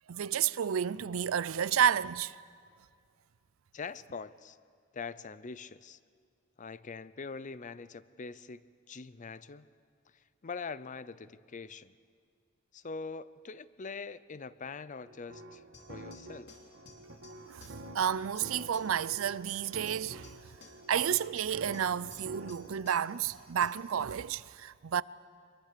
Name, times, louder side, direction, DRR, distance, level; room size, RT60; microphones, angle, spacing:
voice 1, 0.1-2.4 17.5-20.5 20.9-25.0, right 8 dB, 90° right, 0.5 m, -31 dB
voice 2, 3.7-4.6 4.9-6.0 6.6-9.7 10.1-12.0 12.7-15.6 15.9-16.5, left 4 dB, 40° left, 0.5 m, -43 dB
sound 1, 15.1-22.7, right 1 dB, 65° right, 1.7 m, -49 dB
sound 2, 15.7-23.9, left 3 dB, 60° left, 3.4 m, -57 dB
24.0 x 22.5 x 6.7 m
head